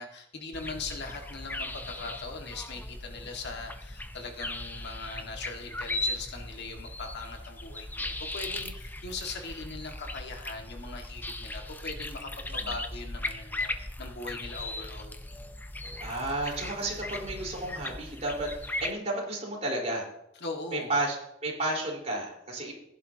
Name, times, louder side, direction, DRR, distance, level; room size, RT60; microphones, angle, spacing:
voice 1, 0.0-15.2 20.4-20.9, left 3 dB, 60° left, 3 dB, 1.8 m, -40 dB
sound 1, 0.5-18.9, left 2 dB, 10° left, 0.7 m, -38 dB
voice 2, 16.0-20.1 20.7-21.2 21.4-22.7, right 2 dB, 35° right, -2 dB, 4.2 m, -32 dB
16.5 x 11.0 x 2.9 m, 0.80 s
head